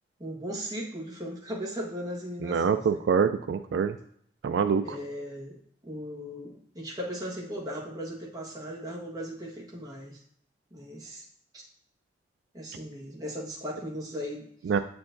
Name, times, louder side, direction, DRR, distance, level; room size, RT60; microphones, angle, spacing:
voice 1, 0.2-3.0 4.8-5.6 5.8-10.2 10.7-11.2 11.5-11.6 12.5-14.5, equal, 20° right, -4 dB, 1.4 m, -37 dB
voice 2, 2.4-4.0 4.4-5.0 14.7-14.8, right 6 dB, 75° right, 9 dB, 0.3 m, -25 dB
8.5 x 4.6 x 2.6 m, 0.66 s
head